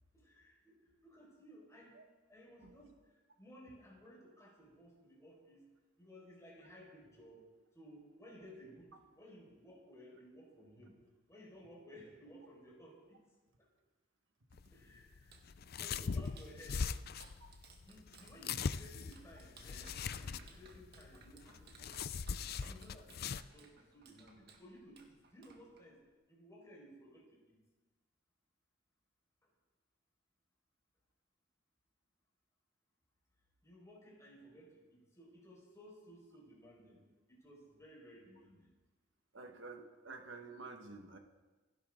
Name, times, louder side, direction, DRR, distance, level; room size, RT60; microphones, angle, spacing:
voice 1, 0.1-0.8 1.0-2.0 2.3-5.6 6.0-7.5 7.7-10.9 11.3-13.2 14.7-15.4 15.8-16.9 17.9-22.0 22.6-26.0 26.3-27.6 33.6-37.0 37.3-38.7, equal, 15° left, -3 dB, 5.3 m, -57 dB
sound 1, 14.5-23.4, left 5 dB, 55° left, 0.5 m, -41 dB
Clapping, 15.2-26.1, right 4 dB, 60° right, 2.1 m, -62 dB
voice 2, 39.3-41.2, right 3 dB, 75° right, 4 dB, 1.7 m, -50 dB
27.0 x 11.5 x 3.9 m, 1.2 s
head